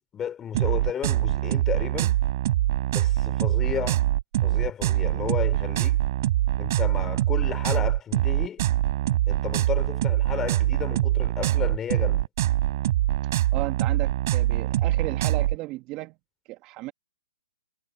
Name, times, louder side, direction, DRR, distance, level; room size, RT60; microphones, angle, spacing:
voice 1, 0.1-2.2 2.9-4.0 4.4-6.0 6.6-8.6 9.3-12.2, left 9 dB, 15° left, 5.7 m, -33 dB
sound 1, 0.5-15.6, right 14 dB, 45° right, 6.7 m, -24 dB
voice 2, 13.5-16.2 16.5-16.9, right 19 dB, 25° right, 2.4 m, -34 dB
hypercardioid pair, 145°, 2 cm